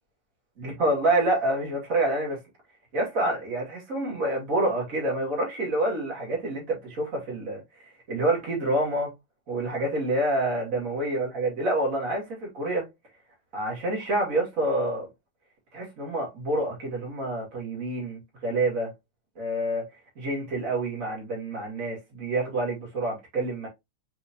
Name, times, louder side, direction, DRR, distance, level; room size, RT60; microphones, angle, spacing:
voice 1, 0.6-2.4 2.9-9.1 9.5-12.8 13.5-15.1 15.7-18.9 19.4-19.8 20.2-23.7, right 1 dB, 30° right, 2.1 m, -27 dB
4.9 x 3.6 x 2.8 m
omnidirectional pair, 3.4 m